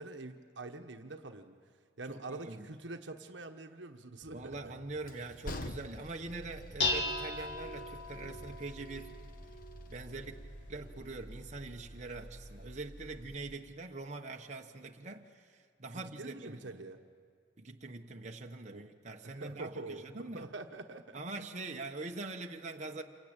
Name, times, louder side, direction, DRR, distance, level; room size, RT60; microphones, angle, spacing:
voice 1, 0.0-1.6 2.0-4.7 15.9-17.0 18.7-18.8 19.2-21.2, right 3 dB, 70° right, 1.2 m, -45 dB
voice 2, 2.1-2.7 4.3-9.2 9.9-16.8 17.6-20.5 21.1-23.0, right 3 dB, 40° right, 1.2 m, -43 dB
Train, 4.2-12.8, left 1 dB, 45° left, 1.2 m, -50 dB
Dishes pots and pans, 6.3-13.4, left 2 dB, 65° left, 2.4 m, -40 dB
28.0 x 23.5 x 8.9 m
head